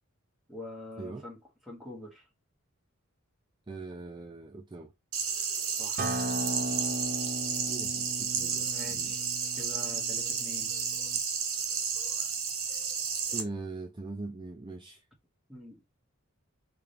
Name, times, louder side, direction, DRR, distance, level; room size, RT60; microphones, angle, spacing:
voice 1, 0.5-1.4 1.7-2.3 5.8-6.2 8.7-9.3 9.6-10.7 15.5-15.8, left 2 dB, ahead, 1.9 m, -45 dB
voice 2, 3.7-4.9 7.6-9.2 13.3-15.0, right 3 dB, 20° right, 0.5 m, -41 dB
sound 1, 5.1-13.4, right 6 dB, 65° right, 1.3 m, -32 dB
Acoustic guitar, 6.0-11.2, right 1 dB, 40° right, 0.8 m, -37 dB
5.0 x 2.8 x 3.4 m
head